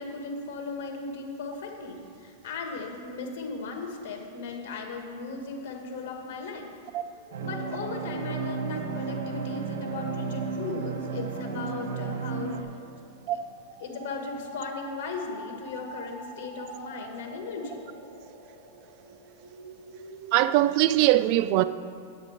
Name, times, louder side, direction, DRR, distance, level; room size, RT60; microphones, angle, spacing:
voice 1, 0.0-6.7 7.4-12.7 13.3-13.4 13.8-17.8, left 4 dB, 60° left, 1.9 m, -37 dB
sound 1, 7.1-20.4, equal, 25° right, 2.6 m, -45 dB
sound 2, 7.3-12.6, right 6 dB, 75° right, 1.0 m, -33 dB
voice 2, 20.3-21.6, right 15 dB, 45° right, 0.3 m, -21 dB
8.9 x 8.7 x 5.1 m
hypercardioid pair, 140°, 0 cm